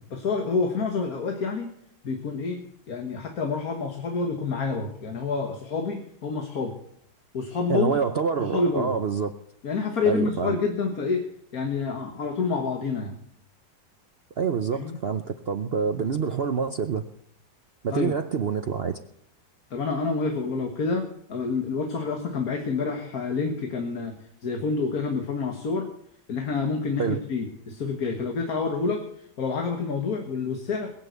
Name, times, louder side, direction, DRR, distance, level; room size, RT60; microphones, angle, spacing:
voice 1, 0.1-1.7 2.0-6.8 7.3-8.0 8.4-9.0 9.6-11.3 11.5-13.2 14.7-15.0 16.0-16.1 17.9-18.2 19.7-24.1 24.4-25.9 26.3-30.9, left 4 dB, 50° left, 5 dB, 1.9 m, -28 dB
voice 2, 7.7-9.3 10.0-10.6 14.4-17.0 17.8-19.0 27.0-27.2, right 6 dB, 80° right, 8 dB, 0.5 m, -26 dB
21.5 x 7.4 x 8.0 m, 0.71 s
omnidirectional pair, 2.1 m